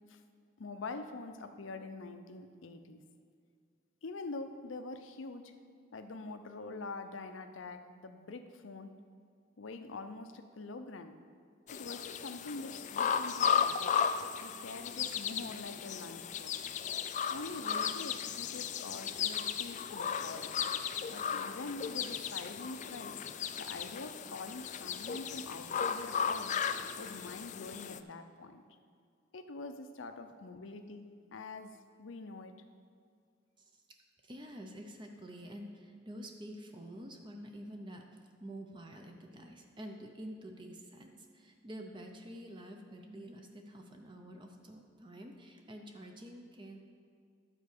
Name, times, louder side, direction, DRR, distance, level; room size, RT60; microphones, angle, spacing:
voice 1, 0.6-3.0 4.0-5.5 5.9-8.9 9.6-11.2 11.7-13.9 14.4-16.5 17.3-20.5 21.1-23.2 23.6-26.6 27.0-28.6 29.3-32.5, left 3 dB, 85° left, 8 dB, 0.7 m, -45 dB
sound 1, 11.7-28.0, left 7 dB, 40° left, 0.3 m, -35 dB
voice 2, 34.2-46.8, equal, 25° right, 3 dB, 0.7 m, -48 dB
11.5 x 4.6 x 6.6 m, 2.2 s
head